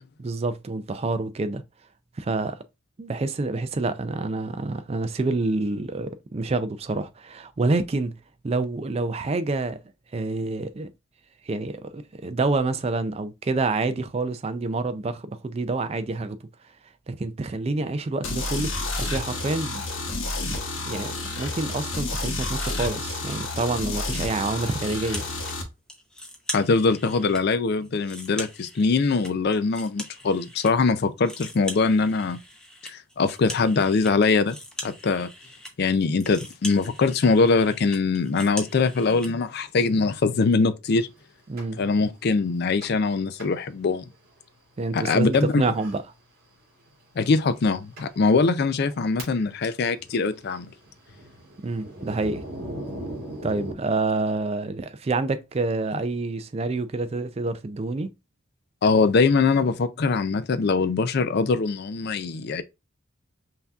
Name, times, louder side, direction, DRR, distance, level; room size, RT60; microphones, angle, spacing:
voice 1, 0.2-1.6 2.2-2.6 3.0-8.2 8.4-9.8 10.1-10.9 11.4-16.4 17.1-19.8 20.1-20.2 20.5-20.6 20.9-25.2 41.5-41.8 44.8-46.0 51.6-52.4 53.4-58.1, right 3 dB, 30° right, 0.4 m, -27 dB
sound 1, 18.2-25.6, left 2 dB, 75° left, 1.0 m, -30 dB
sound 2, 24.8-25.6 25.9-27.4 27.8-30.7 31.0-39.3, left 1 dB, 5° left, 0.7 m, -40 dB
voice 2, 26.5-32.4 32.8-34.6 34.8-35.3 35.8-41.1 41.8-44.0 44.9-45.7 47.2-50.7 58.8-62.6, left 4 dB, 50° left, 0.4 m, -22 dB
Thunder, 41.6-41.7 42.8-43.1 43.4-43.5 44.1-44.2 45.1-45.4 45.8-46.0 46.9-47.0 47.6-47.7 48.0-48.1 48.7-49.6 49.9-53.7, right 1 dB, 50° right, 2.5 m, -38 dB
5.6 x 2.7 x 2.3 m
head